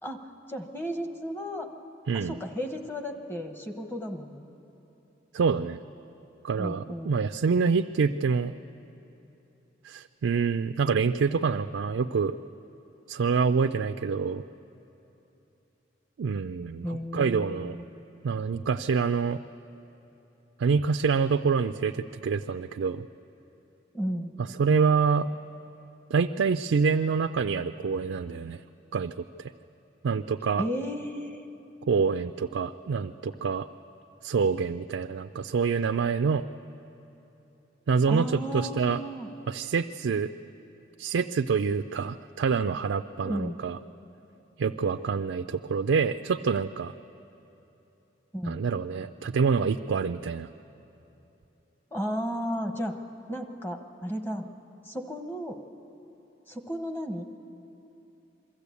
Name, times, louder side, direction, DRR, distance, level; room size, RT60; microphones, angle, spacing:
voice 1, 0.5-1.7 2.1-4.5 6.6-7.2 16.8-17.9 23.9-24.4 30.6-31.5 38.1-39.3 43.2-43.6 48.3-48.7 51.9-52.9 53.3-54.5 54.8-55.6 56.5-57.2, equal, 10° left, 5 dB, 1.0 m, -34 dB
voice 2, 2.1-2.4 5.3-5.8 6.4-8.5 9.8-12.4 13.1-14.4 16.2-17.8 18.2-19.4 20.6-23.1 24.6-25.3 26.1-28.6 28.9-29.1 29.4-29.5 30.0-30.6 31.9-33.7 34.2-36.4 37.9-39.0 39.5-40.3 41.0-43.8 44.6-46.9 48.4-50.5, right 5 dB, 85° right, 8 dB, 0.4 m, -26 dB
23.0 x 13.5 x 8.3 m, 3.0 s
head